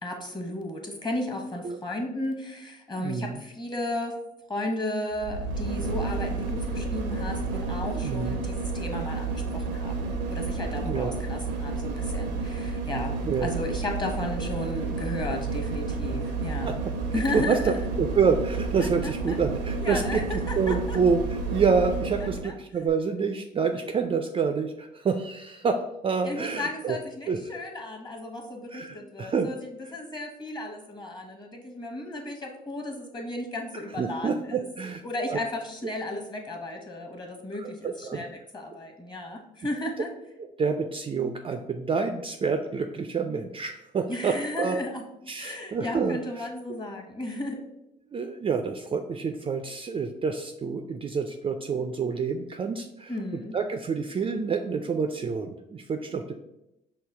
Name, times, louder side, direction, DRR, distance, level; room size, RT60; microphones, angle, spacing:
voice 1, 0.0-4.2 4.5-13.2 13.4-16.8 17.1-17.8 19.0-19.4 19.8-21.0 22.2-22.5 26.2-34.6 35.0-40.1 44.1-45.0 45.4-47.6 53.1-53.6, left 1 dB, 20° left, 2 dB, 1.1 m, -34 dB
voice 2, 3.0-3.4 7.9-8.4 10.8-11.1 13.2-13.5 16.6-16.9 17.3-17.7 18.0-27.0 27.3-27.4 28.7-29.5 34.0-35.0 35.3-35.4 37.6-38.3 40.4-44.8 45.3-46.5 48.1-56.3, right 5 dB, 25° right, 6 dB, 0.4 m, -28 dB
sound 1, 5.1-22.5 22.9-23.0, right 3 dB, 80° right, 0.5 m, -31 dB
5.6 x 2.2 x 3.3 m, 0.88 s
hypercardioid pair, 45°, 21 cm